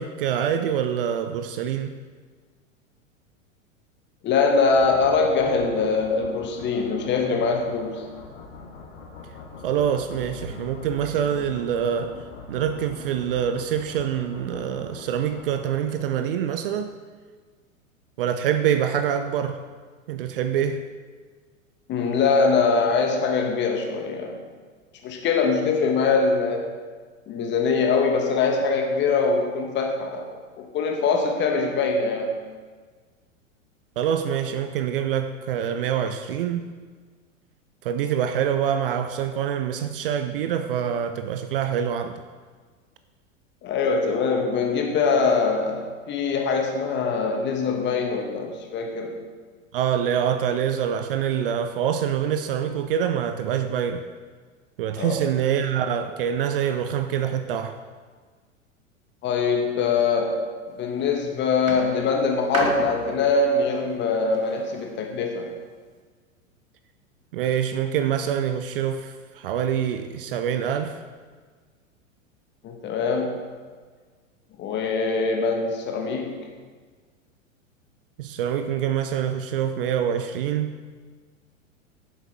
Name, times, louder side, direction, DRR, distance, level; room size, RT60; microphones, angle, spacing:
voice 1, 0.0-2.0 9.6-12.2 12.5-16.9 18.2-19.6 20.1-20.9 34.0-36.7 37.8-42.2 49.7-54.1 54.8-57.8 67.3-71.0 78.2-80.8, right 9 dB, 45° right, 9 dB, 0.5 m, -25 dB
voice 2, 4.2-8.0 21.9-24.4 25.0-26.7 27.3-30.2 30.6-32.4 43.6-49.2 55.0-55.2 59.2-60.5 60.8-65.5 72.6-73.4 74.6-76.4, left 4 dB, 25° left, 2 dB, 1.4 m, -23 dB
sound 1, 4.7-16.4, left 3 dB, 55° left, 1.7 m, -43 dB
sound 2, 60.7-61.0 61.7-64.9 65.7-65.8, right 2 dB, 85° right, 1.3 m, -33 dB
10.0 x 7.4 x 3.5 m, 1.5 s
figure-of-eight pair, 95°, 40 cm